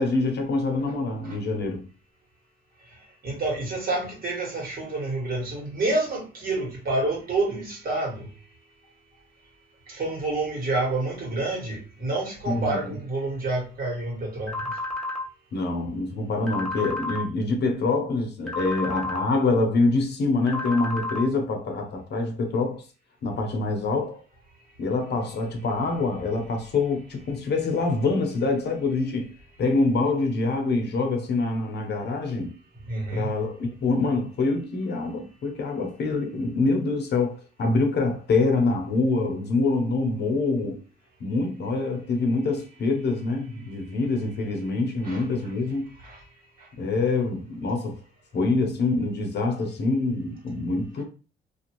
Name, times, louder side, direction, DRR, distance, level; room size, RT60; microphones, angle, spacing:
voice 1, 0.0-1.9 12.5-13.0 15.5-22.8 23.2-24.2 24.8-29.3 29.6-32.6 33.1-40.8 41.2-45.9 46.8-48.0 48.3-51.0, left 3 dB, 60° left, 0.8 m, -25 dB
voice 2, 3.2-8.3 9.9-14.5 32.9-33.3 45.0-45.2 46.0-46.2, right 2 dB, 45° right, 1.5 m, -28 dB
sound 1, 14.5-15.2 16.5-17.2 18.5-19.2 20.5-21.2, left 2 dB, 5° left, 0.8 m, -31 dB
2.5 x 2.4 x 3.0 m
cardioid pair, 90°, 20 cm